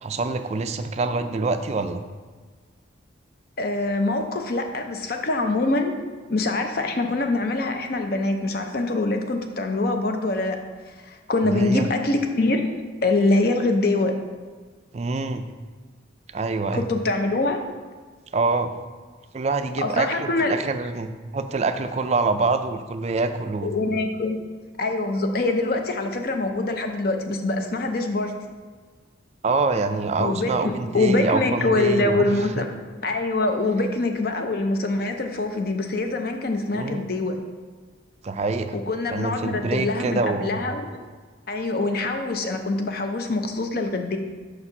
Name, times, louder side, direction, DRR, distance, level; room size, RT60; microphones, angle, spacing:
voice 1, 0.0-2.0 11.4-11.9 14.9-15.4 16.3-16.9 18.3-18.7 19.3-23.7 29.4-32.6 36.7-37.0 38.2-38.8 39.1-40.6, right 3 dB, 35° right, 9 dB, 0.3 m, -25 dB
voice 2, 3.6-5.9 6.3-10.6 11.0-12.7 13.0-14.2 16.7-17.6 19.8-20.6 23.6-24.4 24.8-28.3 30.2-32.7 33.0-37.4 38.7-40.8 41.5-44.2, left 2 dB, 50° left, 5 dB, 0.6 m, -24 dB
5.2 x 4.1 x 5.9 m, 1.5 s
head